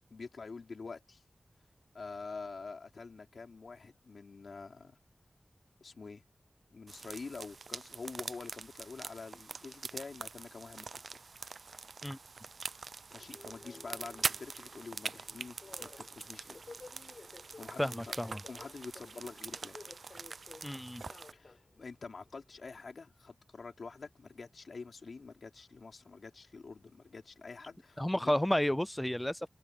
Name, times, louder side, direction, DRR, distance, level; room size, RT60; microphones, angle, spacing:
voice 1, 0.1-1.2 1.9-5.0 5.8-6.2 6.7-11.2 13.1-16.6 17.6-19.8 21.3-28.3, left 4 dB, 80° left, 4.1 m, -47 dB
sound 1, 6.9-21.3, right 4 dB, 80° right, 0.6 m, -43 dB
Subway metro underground, 13.1-22.8, left 3 dB, 55° left, 7.3 m, -55 dB
voice 2, 17.8-18.4 20.6-21.0 28.0-29.5, left 1 dB, 10° left, 0.4 m, -31 dB
open air
wide cardioid pair, 95°, 0 cm